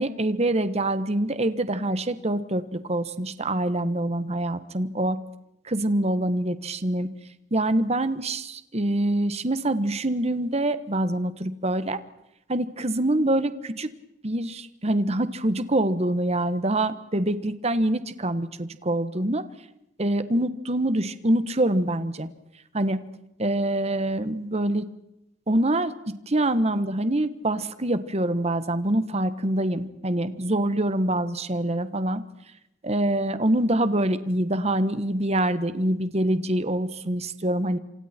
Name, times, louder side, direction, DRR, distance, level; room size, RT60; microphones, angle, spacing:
voice 1, 0.0-5.2 5.6-7.1 7.5-12.0 12.5-13.9 14.2-19.4 20.0-22.3 22.7-23.0 23.4-24.9 25.5-32.2 32.8-37.8, right 1 dB, 35° right, 12 dB, 1.4 m, -25 dB
28.0 x 26.5 x 4.5 m, 0.84 s
head